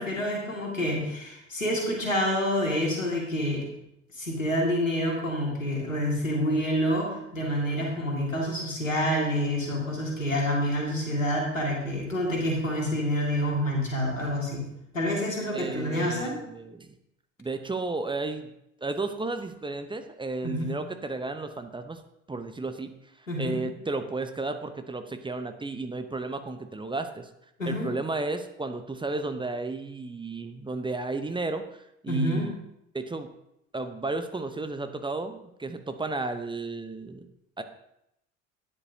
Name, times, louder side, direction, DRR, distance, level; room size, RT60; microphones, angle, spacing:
voice 1, 0.0-3.7 4.1-14.7 14.9-16.4 20.4-20.7 23.3-23.6 27.6-27.9 32.1-32.5, equal, 90° left, -1 dB, 2.1 m, -28 dB
voice 2, 15.5-16.9 17.4-18.5 18.8-22.0 22.3-27.3 27.7-32.5 32.9-33.3 33.7-37.3 37.6-37.7, right 3 dB, 15° right, 8 dB, 0.8 m, -33 dB
13.0 x 9.9 x 2.7 m, 0.80 s
figure-of-eight pair, 60°, 38 cm